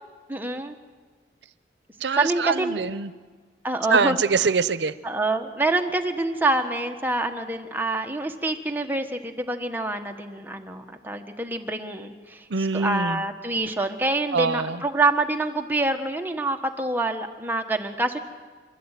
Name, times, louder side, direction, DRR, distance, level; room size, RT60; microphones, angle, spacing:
voice 1, 0.3-0.7 2.2-2.8 3.6-4.2 5.0-18.2, right 2 dB, 10° right, 4 dB, 1.3 m, -26 dB
voice 2, 2.0-3.1 3.9-4.9 12.5-13.2 14.3-14.8, right 4 dB, 85° right, 16 dB, 0.7 m, -24 dB
27.0 x 12.0 x 9.1 m, 1.5 s
head